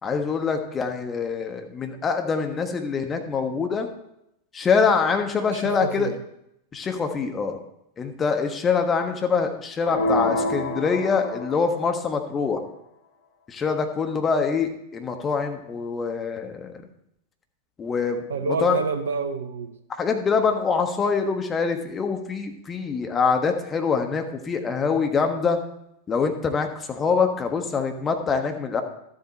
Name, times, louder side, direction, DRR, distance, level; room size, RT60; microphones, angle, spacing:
voice 1, 0.0-3.9 4.5-6.1 6.7-7.6 8.0-12.6 13.5-16.8 17.8-18.8 19.9-25.6 26.1-28.8, left 5 dB, 20° left, 1.3 m, -24 dB
voice 2, 5.5-6.2 18.3-19.8, right 4 dB, 65° right, 0.7 m, -28 dB
sound 1, 9.8-11.9, left 1 dB, 55° left, 2.9 m, -27 dB
12.0 x 7.9 x 4.2 m
figure-of-eight pair, 90°, 0 cm